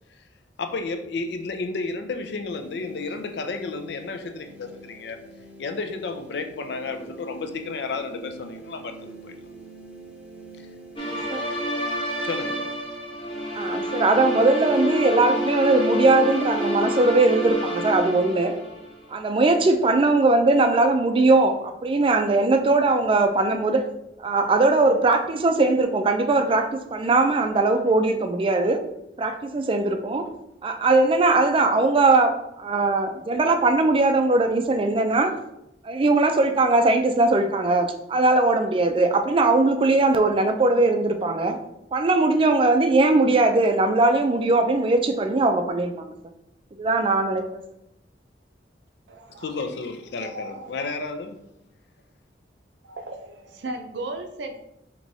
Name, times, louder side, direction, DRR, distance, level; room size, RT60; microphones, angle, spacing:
voice 1, 0.6-5.3 5.6-9.5 12.2-12.7 49.4-51.4, left 3 dB, 70° left, 7 dB, 0.4 m, -32 dB
sound 1, 2.5-11.2, right 2 dB, 10° right, 0.8 m, -45 dB
sound 2, 11.0-18.9, equal, 30° left, 0.8 m, -28 dB
voice 2, 13.5-18.5 19.1-23.8 24.2-28.8 29.2-30.2 30.6-32.3 32.6-35.3 35.8-41.6 41.9-46.1 46.8-47.6, right 2 dB, 30° right, 6 dB, 0.4 m, -20 dB
voice 3, 49.1-49.5 50.1-50.9 52.8-54.6, right 2 dB, 80° right, 5 dB, 0.5 m, -36 dB
4.7 x 2.9 x 2.7 m, 0.83 s
head